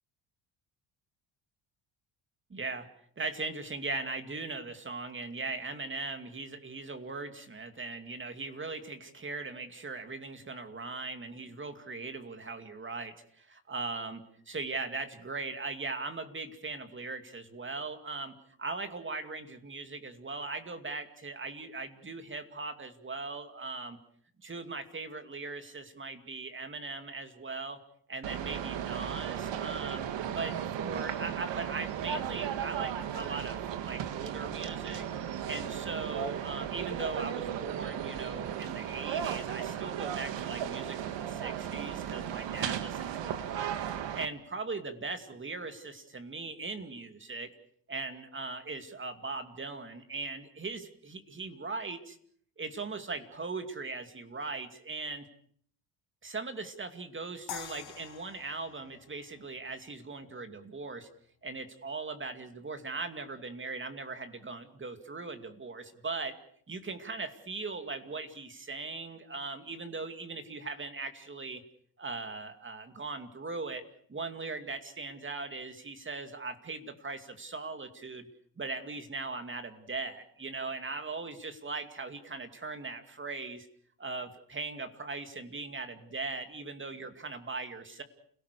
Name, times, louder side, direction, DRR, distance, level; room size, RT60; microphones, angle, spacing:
voice 1, 2.5-2.9 3.2-24.0 24.4-27.8 28.1-35.1 35.4-43.7 44.1-47.5 47.9-52.2 52.6-55.3 56.2-61.1 61.4-66.4 66.7-71.6 72.0-73.8 74.1-78.3 78.6-83.7 84.0-88.0, right 3 dB, 25° right, 8 dB, 2.5 m, -39 dB
sound 1, 28.2-44.3, right 9 dB, 70° right, 2.0 m, -35 dB
sound 2, 57.5-60.5, left 13 dB, 55° left, 1.2 m, -47 dB
30.0 x 17.5 x 6.8 m, 0.62 s
cardioid pair, 110°, 45 cm